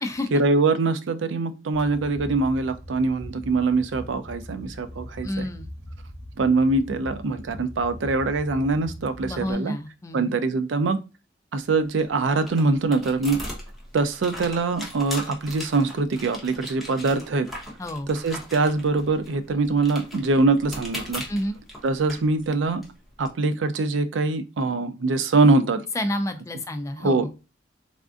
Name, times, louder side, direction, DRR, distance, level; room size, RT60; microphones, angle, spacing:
voice 1, 0.3-5.5 6.4-9.7 10.1-11.0 11.5-13.4 13.9-17.5 18.1-21.2 21.8-22.8 23.2-25.8 27.0-27.4, right 3 dB, 85° right, 10 dB, 0.4 m, -23 dB
sound 1, 1.7-9.5, equal, 35° right, 0.8 m, -41 dB
voice 2, 5.2-5.7 9.2-10.3 17.8-18.1 21.3-21.6 25.9-27.3, left 1 dB, 15° left, 7 dB, 0.3 m, -29 dB
sound 2, 11.6-23.3, left 1 dB, ahead, 0.7 m, -40 dB
3.4 x 2.5 x 2.4 m, 0.29 s
head